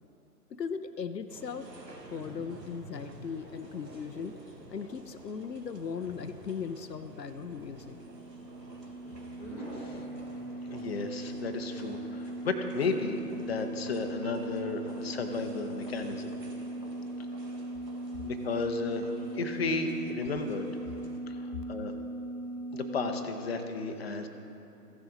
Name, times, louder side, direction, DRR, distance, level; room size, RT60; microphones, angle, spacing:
voice 1, 0.5-1.7 2.1-4.4 4.7-8.0, left 6 dB, 85° left, 10 dB, 0.6 m, -38 dB
sound 1, 1.3-21.2, right 2 dB, 85° right, 1.4 m, -52 dB
sound 2, 1.5-14.2, right 1 dB, 5° right, 1.1 m, -51 dB
sound 3, 6.9-23.0, right 1 dB, 35° right, 1.6 m, -39 dB
voice 2, 10.7-16.3 18.2-19.1 19.3-20.7 21.3-21.9 22.7-24.3, left 3 dB, 40° left, 5 dB, 0.7 m, -33 dB
15.0 x 6.4 x 3.8 m, 2.9 s
figure-of-eight pair, 135°, 48 cm